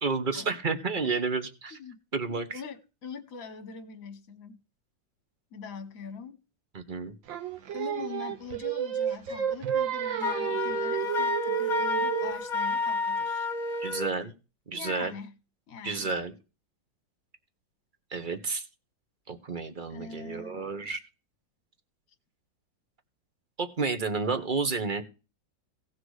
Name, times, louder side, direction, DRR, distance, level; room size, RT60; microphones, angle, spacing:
voice 1, 0.0-1.8 2.1-2.6 6.7-7.1 13.8-14.3 14.7-15.1 15.8-16.3 18.1-18.7 19.3-21.0 23.6-25.0, right 4 dB, 30° right, 1.1 m, -31 dB
voice 2, 2.3-4.6 5.5-6.4 7.7-13.5 14.7-15.3 15.7-16.1 19.9-20.7, left 5 dB, 50° left, 1.6 m, -42 dB
Singing, 7.3-12.5, right 9 dB, 80° right, 1.8 m, -31 dB
Wind instrument woodwind instrument, 10.2-14.1, left 4 dB, 30° left, 0.9 m, -30 dB
17.0 x 6.1 x 4.8 m
omnidirectional pair, 2.1 m